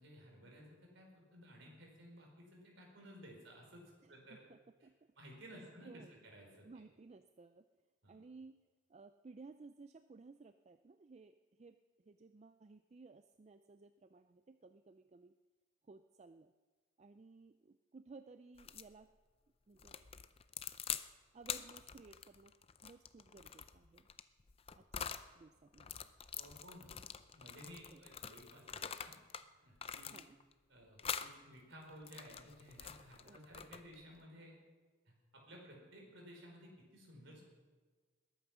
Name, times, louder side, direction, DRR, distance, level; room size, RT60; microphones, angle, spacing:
voice 1, 0.0-4.4 5.2-6.7 8.0-8.2 26.3-26.9 27.3-29.2 29.6-30.2 30.7-34.5 35.1-37.4, equal, 60° right, 0 dB, 4.7 m, -56 dB
voice 2, 4.0-5.1 5.5-6.2 6.6-7.7 8.1-8.6 8.9-15.4 15.8-16.5 17.0-19.1 19.7-20.0 21.3-22.5 22.8-24.1 24.8-26.1 27.9-28.0 30.1-30.4 33.2-33.5 35.5-35.6, right 3 dB, 30° right, 10 dB, 0.3 m, -58 dB
sound 1, 18.6-18.9 19.8-21.1 21.4-25.3 25.7-29.5 29.8-30.5 31.0-31.3 31.9-34.0, left 8 dB, 25° left, 0.5 m, -45 dB
20.5 x 9.1 x 6.1 m, 1.4 s
head